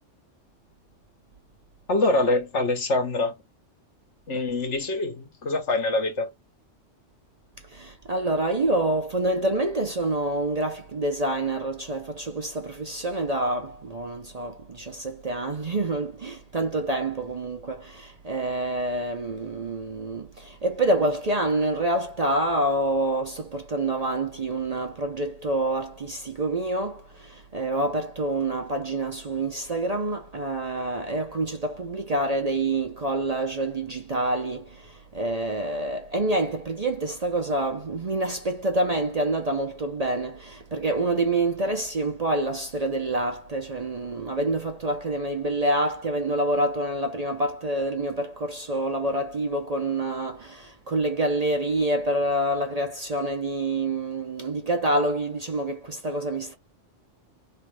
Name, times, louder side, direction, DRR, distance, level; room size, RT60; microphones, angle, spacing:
voice 1, 1.9-3.3 4.3-6.3, left 2 dB, 70° left, 1.6 m, -24 dB
voice 2, 7.7-56.5, right 1 dB, 40° right, 0.7 m, -27 dB
3.2 x 3.2 x 4.7 m
omnidirectional pair, 1.2 m